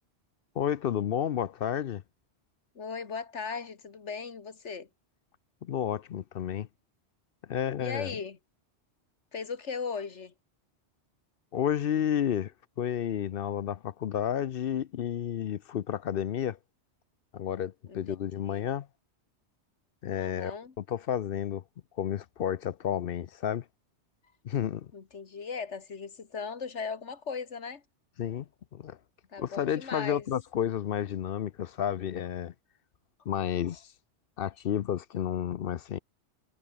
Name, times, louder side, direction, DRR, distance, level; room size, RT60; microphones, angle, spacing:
voice 1, 0.6-2.0 5.6-6.7 7.5-8.2 11.5-16.6 17.3-18.9 20.0-21.6 22.0-23.7 24.4-24.9 28.2-29.0 29.4-32.5 33.3-33.9 34.4-36.0, left 9 dB, 60° left, 0.8 m, -31 dB
voice 2, 2.8-4.9 7.8-8.4 9.3-10.3 17.9-18.2 18.5-18.7 20.1-20.7 24.9-27.8 29.3-30.3, left 5 dB, 85° left, 2.0 m, -38 dB
omnidirectional pair, 1.2 m